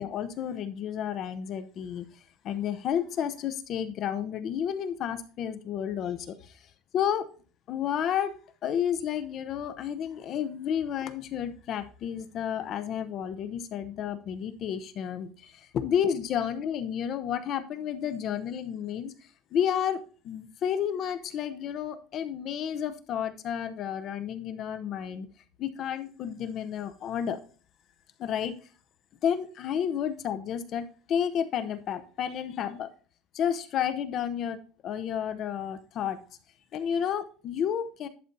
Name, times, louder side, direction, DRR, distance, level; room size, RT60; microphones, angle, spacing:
voice 1, 0.0-2.1 2.4-6.6 6.9-7.3 7.7-8.3 8.6-19.1 19.5-25.3 25.6-27.4 28.2-28.6 29.2-32.9 33.3-36.2 36.7-38.1, left 9 dB, 35° left, 11 dB, 0.7 m, -31 dB
11.0 x 4.2 x 4.0 m, 0.38 s
cardioid pair, 180°, 0 cm